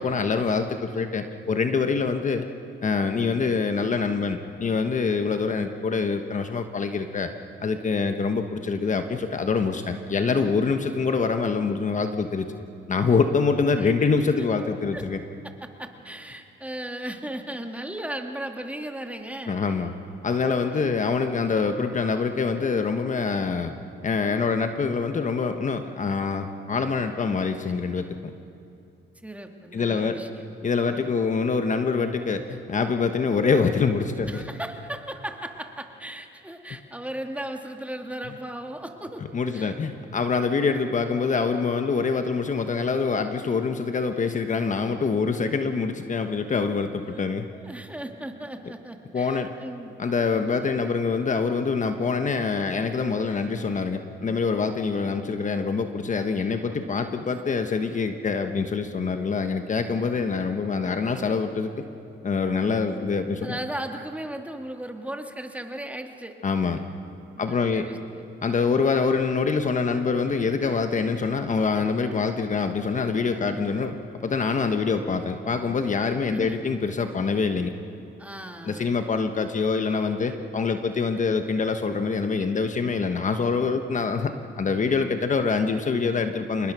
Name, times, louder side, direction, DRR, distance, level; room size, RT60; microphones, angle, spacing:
voice 1, 0.0-2.5 2.8-7.3 7.6-12.5 12.9-15.2 19.5-20.0 20.2-23.7 24.0-28.1 29.7-30.2 30.6-34.4 36.7-36.8 39.3-47.5 49.1-49.5 50.0-61.7 62.2-63.6 66.4-66.8 67.4-67.9 68.4-74.0 74.2-77.7 78.6-84.3 84.6-86.7, left 4 dB, 40° left, 7 dB, 1.2 m, -25 dB
voice 2, 15.4-19.6 20.7-21.0 29.2-30.5 34.3-39.2 39.5-39.7 47.0-47.3 47.5-50.0 63.4-66.4 67.4-68.2 76.3-76.6 78.2-78.9, right 1 dB, 5° right, 4 dB, 2.0 m, -36 dB
27.0 x 21.0 x 6.2 m, 2.5 s
cardioid pair, 90°, 20 cm